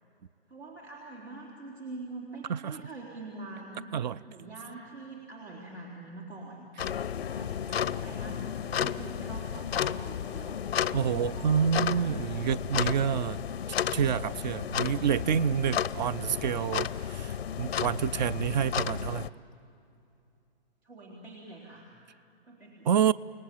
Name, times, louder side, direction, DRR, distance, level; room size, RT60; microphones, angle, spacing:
voice 1, 0.5-6.7 7.2-7.5 7.8-10.6 11.3-12.2 14.6-14.9 20.8-21.9 22.4-22.9, right 2 dB, 80° right, -3 dB, 4.0 m, -44 dB
sound 1, 6.8-19.3, left 9 dB, 75° left, 0.7 m, -33 dB
voice 2, 10.9-13.4 13.9-19.3 22.9-23.1, right 8 dB, 45° right, 19 dB, 0.5 m, -28 dB
29.5 x 18.5 x 9.0 m, 2.7 s
figure-of-eight pair, 115°, 31 cm